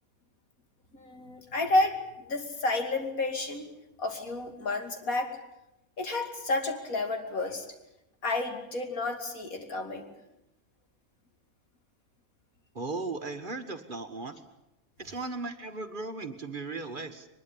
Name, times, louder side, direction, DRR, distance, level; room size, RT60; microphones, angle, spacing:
voice 1, 0.9-2.0 2.3-3.7 4.0-5.4 6.0-7.6 8.2-10.1, left 2 dB, 90° left, 5 dB, 3.1 m, -30 dB
voice 2, 12.7-14.4 15.0-17.3, right 3 dB, 40° right, 8 dB, 1.6 m, -36 dB
22.0 x 21.0 x 8.6 m, 0.88 s
omnidirectional pair, 1.4 m